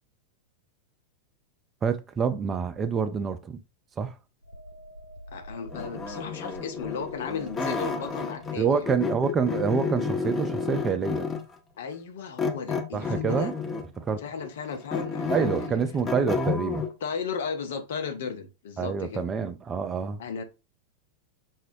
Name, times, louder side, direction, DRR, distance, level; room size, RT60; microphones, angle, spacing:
voice 1, 1.8-3.6 4.0-4.1 8.6-11.3 12.9-13.5 14.0-14.2 15.3-16.9 18.8-20.2, right 6 dB, 20° right, 0.4 m, -27 dB
sound 1, 4.4-11.9 12.2-12.4, equal, 85° right, 0.6 m, -49 dB
voice 2, 5.3-8.9 11.8-13.5 14.2-15.8 17.0-19.2 20.2-20.4, left 6 dB, 60° left, 0.5 m, -35 dB
sound 2, 5.7-8.6 8.8-11.5 12.4-14.0 14.4-16.9, left 5 dB, 20° left, 0.6 m, -31 dB
5.5 x 2.0 x 2.6 m
figure-of-eight pair, 90°, 0 cm